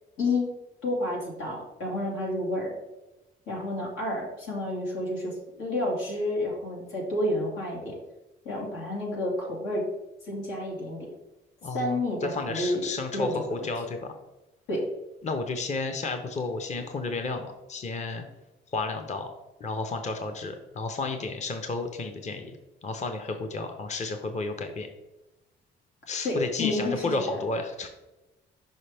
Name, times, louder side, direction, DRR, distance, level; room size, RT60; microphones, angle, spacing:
voice 1, 0.2-0.5 0.8-2.7 3.5-8.0 8.4-9.9 10.2-11.0 11.7-12.8 13.1-13.7 14.7-14.9 26.2-27.1, left 1 dB, 90° left, -2 dB, 2.1 m, -30 dB
voice 2, 11.6-14.1 15.2-18.2 18.7-19.3 19.6-22.6 22.8-24.9 26.1-27.9, left 3 dB, 35° left, 6 dB, 0.7 m, -32 dB
5.5 x 5.5 x 3.4 m, 1.0 s
cardioid pair, 90°, 20 cm